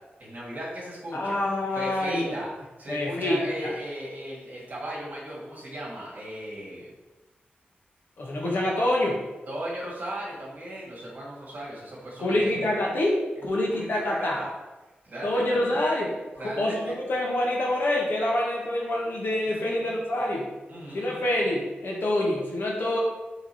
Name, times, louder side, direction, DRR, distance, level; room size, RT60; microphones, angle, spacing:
voice 1, 0.2-1.4 1.7-2.5 2.8-6.9 9.5-12.6 13.4-14.5 15.0-15.4 16.4-16.9 19.5-19.7 20.7-21.3, right 1 dB, 55° right, -6 dB, 1.9 m, -37 dB
voice 2, 1.1-2.4 2.9-3.4 8.2-9.2 12.2-14.4 15.2-16.1 16.4-20.5 20.9-23.0, left 1 dB, 70° left, -2 dB, 1.6 m, -26 dB
6.1 x 3.9 x 4.4 m, 1.1 s
wide cardioid pair, 105°, 4 cm